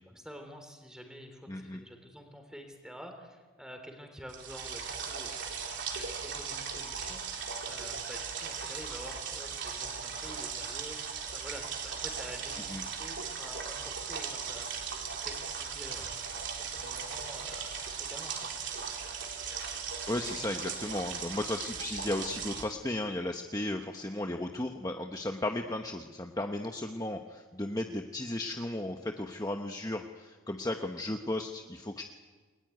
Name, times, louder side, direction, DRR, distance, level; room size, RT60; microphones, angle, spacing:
voice 1, 0.1-5.5 5.7-14.8 15.1-16.3 16.6-18.5, equal, 5° right, 5 dB, 3.5 m, -48 dB
voice 2, 1.5-1.8 12.7-12.8 20.1-32.0, left 1 dB, 15° left, 4 dB, 1.0 m, -35 dB
sound 1, 4.3-22.6, right 6 dB, 60° right, 4.1 m, -38 dB
29.0 x 21.0 x 9.3 m, 1.4 s
head